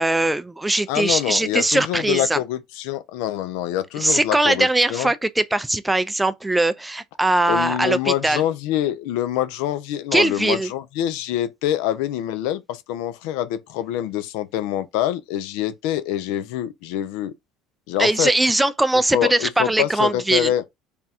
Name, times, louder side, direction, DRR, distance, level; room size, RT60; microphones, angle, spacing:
voice 1, 0.0-2.4 4.0-8.4 10.1-10.7 18.0-20.5, right 2 dB, 10° right, 0.4 m, -20 dB
voice 2, 0.9-5.1 7.5-17.3 17.9-18.3 19.1-20.6, left 12 dB, 80° left, 0.5 m, -25 dB
3.5 x 2.3 x 4.2 m
supercardioid pair, 100°, 0 cm